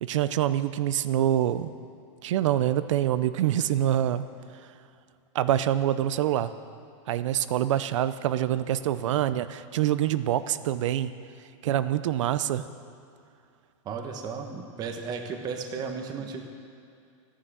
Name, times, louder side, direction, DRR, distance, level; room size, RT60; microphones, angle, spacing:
voice 1, 0.0-1.7 2.2-4.3 5.3-6.5 7.1-11.1 11.6-12.7, right 11 dB, 65° right, 13 dB, 0.6 m, -25 dB
voice 2, 13.8-16.5, right 5 dB, 25° right, 4 dB, 1.1 m, -34 dB
14.0 x 10.0 x 7.5 m, 2.5 s
supercardioid pair, 155°, 17 cm